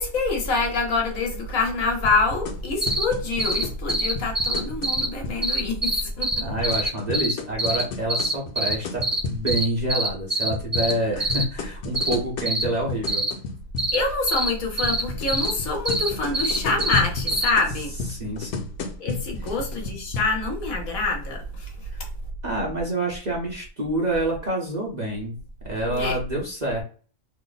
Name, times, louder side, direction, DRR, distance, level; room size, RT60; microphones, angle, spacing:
voice 1, 0.0-6.4 10.8-11.2 13.9-18.0 19.0-22.1 25.9-26.2, left 3 dB, 75° left, 1.4 m, -26 dB
sound 1, 2.1-5.4 6.3-9.7 10.5-14.0 14.8-20.2, left 5 dB, 90° left, 1.1 m, -33 dB
sound 2, 2.8-3.0 3.4-3.6 3.9-5.1 5.4-7.3 7.6-7.8 8.1-8.7 9.0-9.2 9.5-9.6 9.9-10.9 11.2-11.4 11.9-12.1 12.5-12.6 13.1-13.3 13.8-14.0 14.3-14.5 14.8-15.0 15.3-15.5 15.9-17.0 17.3-17.5, right 2 dB, 15° right, 0.4 m, -24 dB
voice 2, 6.4-13.2 18.1-18.7 21.9-22.0 22.4-25.4 25.6-26.8, right 1 dB, 35° right, 0.8 m, -27 dB
3.0 x 2.0 x 3.9 m
omnidirectional pair, 1.5 m